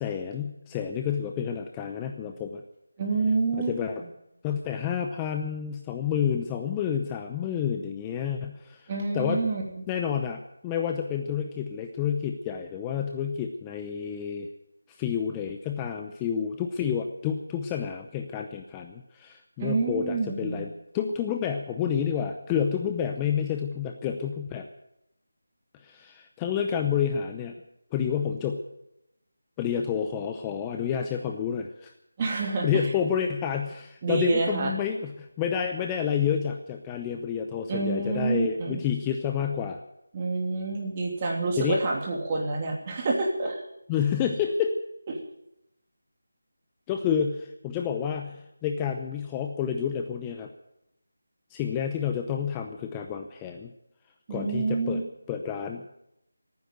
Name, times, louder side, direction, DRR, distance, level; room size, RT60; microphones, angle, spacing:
voice 1, 0.0-2.6 3.5-4.0 4.4-9.4 9.9-14.5 14.9-24.7 25.7-27.5 27.9-28.6 29.6-31.9 32.6-39.8 41.6-41.8 43.9-44.7 46.9-50.5 51.5-53.7 54.3-55.0 55.3-55.9, left 8 dB, 15° left, 4 dB, 0.7 m, -29 dB
voice 2, 3.0-3.7 8.9-9.6 19.6-20.6 32.2-32.7 34.0-34.7 37.7-38.8 40.1-43.6 54.3-55.0, right 3 dB, 25° right, 0 dB, 2.9 m, -27 dB
16.0 x 9.5 x 9.2 m, 0.84 s
figure-of-eight pair, 165°, 0 cm